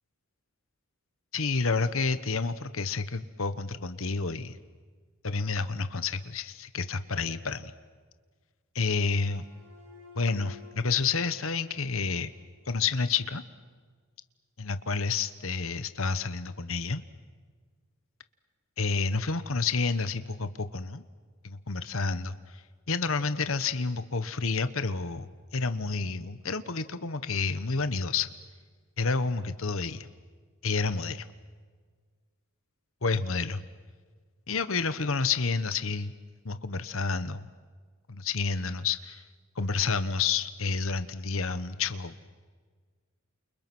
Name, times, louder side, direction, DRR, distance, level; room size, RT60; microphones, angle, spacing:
voice 1, 1.3-4.6 5.2-7.7 8.7-9.4 10.2-12.3 12.7-13.4 14.6-17.0 18.8-21.0 21.4-22.3 22.9-25.3 25.5-28.3 29.0-30.1 30.6-31.2 33.0-33.6 34.5-36.1 36.4-37.4 38.1-39.2 39.6-42.3, left 4 dB, 65° left, 12 dB, 1.2 m, -29 dB
sound 1, 8.8-13.1, left 6 dB, 60° right, 6.2 m, -54 dB
29.0 x 29.0 x 6.2 m, 1.5 s
head